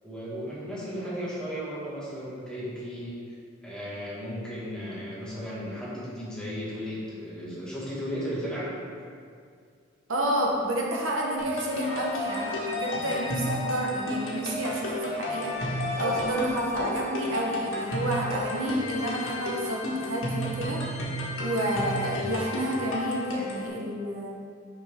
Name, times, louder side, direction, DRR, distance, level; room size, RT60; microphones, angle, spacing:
voice 1, 0.0-3.3 3.6-8.7, equal, 5° left, -9 dB, 1.6 m, -35 dB
voice 2, 10.1-15.6 16.0-20.8 21.4-24.4, right 1 dB, 75° right, -1 dB, 0.9 m, -30 dB
sound 1, 11.4-23.7, left 1 dB, 85° left, 1.4 m, -32 dB
sound 2, 15.5-17.4, left 1 dB, 65° left, 0.9 m, -36 dB
6.3 x 6.1 x 3.5 m, 2.2 s
head